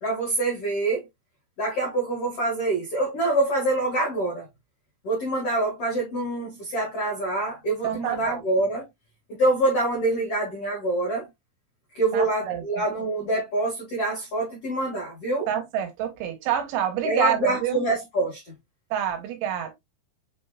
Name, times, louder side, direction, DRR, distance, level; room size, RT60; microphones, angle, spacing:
voice 1, 0.0-1.0 1.6-4.5 5.0-8.9 9.3-11.3 11.9-15.5 17.0-18.5, right 2 dB, 75° left, 1.3 m, -25 dB
voice 2, 7.8-8.4 12.1-12.6 15.5-17.8 18.9-19.7, right 10 dB, 85° right, 3.4 m, -27 dB
6.9 x 3.3 x 2.2 m
omnidirectional pair, 5.4 m